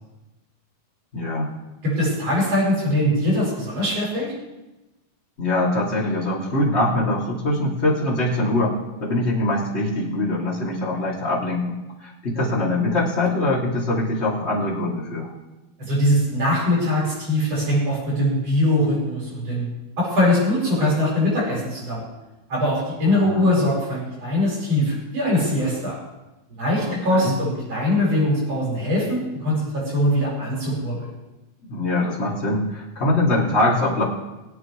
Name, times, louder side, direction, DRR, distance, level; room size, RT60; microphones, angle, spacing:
voice 1, 1.1-1.5 5.4-15.3 23.1-23.6 26.8-27.4 31.7-34.0, left 1 dB, 20° left, -6 dB, 2.5 m, -23 dB
voice 2, 1.8-4.3 15.8-19.7 20.0-22.0 22.5-26.0 26.6-31.1, left 1 dB, 40° right, -5 dB, 6.1 m, -22 dB
22.5 x 8.7 x 3.3 m, 1.0 s
omnidirectional pair, 4.2 m